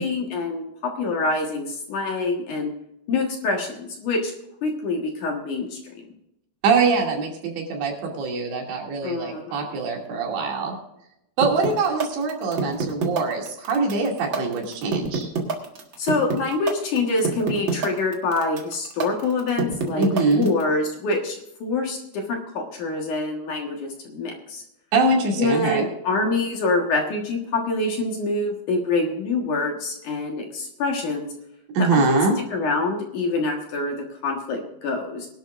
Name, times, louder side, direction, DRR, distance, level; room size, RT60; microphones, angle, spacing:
voice 1, 0.0-2.7 3.1-4.3 4.6-5.8 9.0-9.7 16.0-20.1 20.3-24.6 25.3-31.3 31.8-32.2 32.5-35.3, left 3 dB, 60° left, 1 dB, 2.6 m, -26 dB
voice 2, 6.6-10.7 11.4-15.3 20.0-20.5 24.9-25.9 31.7-32.4, right 3 dB, 85° right, -1 dB, 4.9 m, -23 dB
sound 1, 11.4-20.6, right 5 dB, 55° right, 1.4 m, -26 dB
22.0 x 12.0 x 2.6 m, 0.84 s
omnidirectional pair, 4.9 m